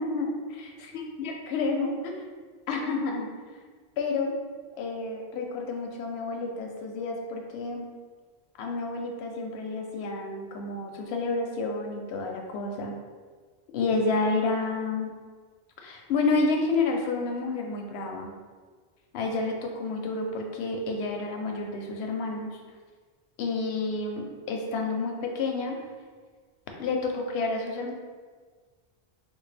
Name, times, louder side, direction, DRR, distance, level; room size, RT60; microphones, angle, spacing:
voice 1, 0.0-0.9 1.2-2.3 2.7-3.3 4.0-4.4 4.8-7.9 8.6-12.9 13.7-15.1 15.8-18.3 19.1-22.6 23.4-25.8 26.8-27.9, left 3 dB, 90° left, 2 dB, 0.8 m, -30 dB
3.6 x 2.2 x 3.2 m, 1.5 s
omnidirectional pair, 1.0 m